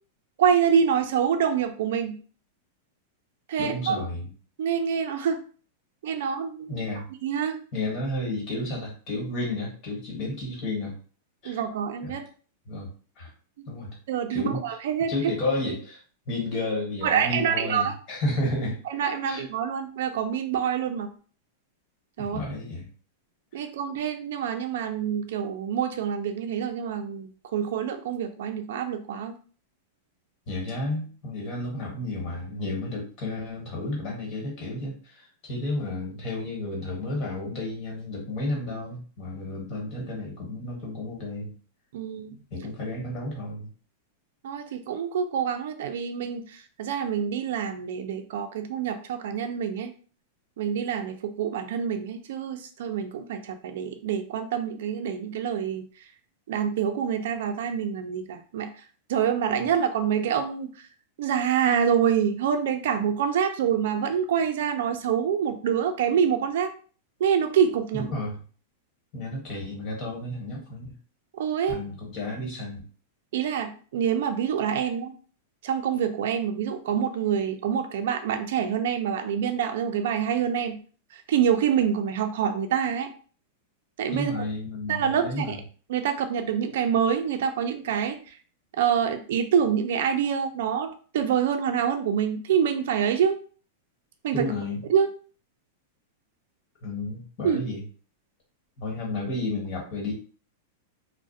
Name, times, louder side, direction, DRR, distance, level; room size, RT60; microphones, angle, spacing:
voice 1, 0.4-2.2 3.5-4.1 4.6-5.4 6.0-6.8 7.2-7.6 11.4-12.2 14.1-15.1 17.0-17.9 18.9-21.1 22.2-22.4 23.5-29.3 41.9-42.4 44.4-49.9 50.6-55.8 56.5-58.7 59.1-60.7 61.2-66.7 67.2-68.1 71.3-71.8 73.3-75.1 75.6-80.8 81.1-83.1 84.0-84.4 84.9-85.6 85.9-88.4 88.8-93.4 94.2-94.4 94.9-95.1 97.4-97.6, right 8 dB, 70° right, 6 dB, 0.3 m, -26 dB
voice 2, 3.6-4.2 6.7-7.0 7.7-10.9 11.4-11.6 12.0-12.2 12.7-12.9 13.2-13.3 13.7-13.9 14.3-14.6 15.1-16.0 16.3-18.8 19.3-19.4 22.2-22.9 30.5-41.5 42.5-43.7 67.9-68.4 69.1-71.0 71.7-72.8 84.1-85.6 94.3-94.8 96.8-97.8 98.8-100.1, left 2 dB, 35° left, -2 dB, 1.1 m, -32 dB
2.3 x 2.0 x 2.6 m, 0.40 s
supercardioid pair, 155°, 0 cm